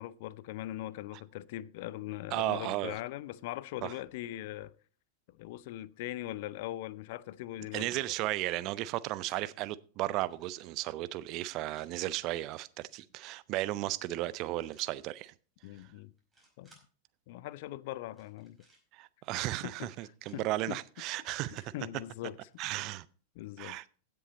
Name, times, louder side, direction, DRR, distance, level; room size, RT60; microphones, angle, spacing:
voice 1, 0.0-4.7 5.3-7.9 15.6-16.1 16.6-16.8 17.3-18.6 19.6-19.9 20.3-20.8 21.4-22.4 23.4-23.8, left 15 dB, 50° left, 0.5 m, -41 dB
voice 2, 2.3-2.9 3.8-3.9 7.7-15.3 18.9-21.7 22.6-23.1 23.6-23.8, right 16 dB, 40° right, 0.5 m, -35 dB
sound 1, 9.0-9.4 10.2-10.8 11.6-12.1 14.6-14.9 15.6-15.8 16.2-16.8 18.1-18.8 19.8-20.4 21.2-21.7 22.5-23.0, right 2 dB, 10° right, 4.9 m, -63 dB
15.5 x 7.0 x 4.1 m
figure-of-eight pair, 90°, 0 cm